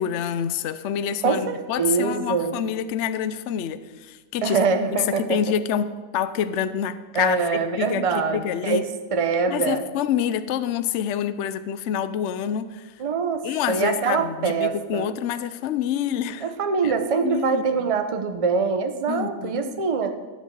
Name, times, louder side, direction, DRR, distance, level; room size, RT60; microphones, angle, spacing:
voice 1, 0.0-4.6 4.9-8.8 9.5-12.9 13.4-16.5 16.8-17.9 19.1-19.8, left 9 dB, 65° left, 13 dB, 0.7 m, -27 dB
voice 2, 1.2-2.6 4.4-5.4 7.1-8.9 9.1-9.9 13.0-15.1 16.4-20.1, right 5 dB, 35° right, 7 dB, 0.6 m, -24 dB
13.0 x 5.2 x 8.1 m, 1.3 s
omnidirectional pair, 1.7 m